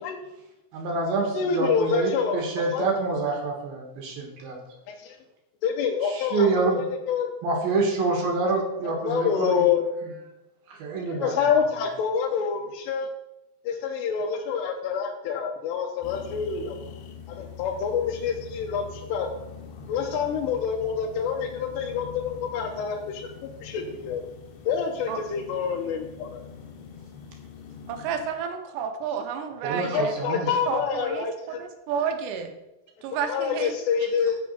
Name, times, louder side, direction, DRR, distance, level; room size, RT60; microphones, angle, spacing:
voice 1, 0.7-4.6 6.0-6.8 7.4-9.6 10.7-11.3 29.6-30.5, right 3 dB, 65° right, 0 dB, 3.0 m, -27 dB
voice 2, 1.3-2.9 4.9-5.2 5.6-7.3 8.8-9.8 11.1-13.1 13.7-16.8 17.3-19.3 19.9-23.3 23.6-24.2 24.7-26.4 29.8-31.6 33.1-34.4, left 6 dB, 85° left, 2 dB, 2.9 m, -27 dB
sound 1, 16.0-28.3, left 6 dB, 65° left, 2.2 m, -44 dB
voice 3, 27.9-30.1 30.7-32.5 33.0-33.8, right 7 dB, 85° right, 6 dB, 3.2 m, -31 dB
8.2 x 6.9 x 5.5 m, 0.94 s
omnidirectional pair, 4.8 m